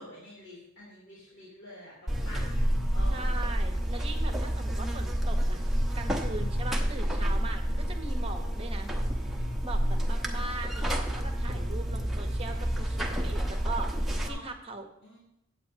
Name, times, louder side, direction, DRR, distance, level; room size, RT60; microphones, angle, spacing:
voice 1, 0.0-2.6 2.9-3.5 14.2-14.4 15.0-15.2, left 1 dB, 65° left, -7 dB, 3.3 m, -47 dB
Buzz, 2.1-14.3, equal, ahead, 1.0 m, -29 dB
voice 2, 3.1-5.6 5.9-8.9 9.6-14.9, right 3 dB, 30° right, 5 dB, 1.1 m, -40 dB
23.0 x 8.2 x 2.9 m, 0.78 s
head